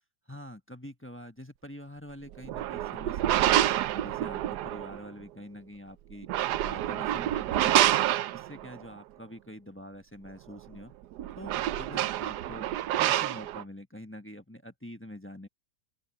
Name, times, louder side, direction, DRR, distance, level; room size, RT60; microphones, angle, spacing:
voice 1, 0.3-3.6 3.9-7.9 8.3-10.9 11.4-12.7 13.0-15.5, equal, 10° left, 1.1 m, -45 dB
sound 1, 2.3-5.0 6.1-8.8 10.7-10.8 11.1-13.6, right 13 dB, 80° right, 1.2 m, -27 dB
open air
omnidirectional pair, 1.8 m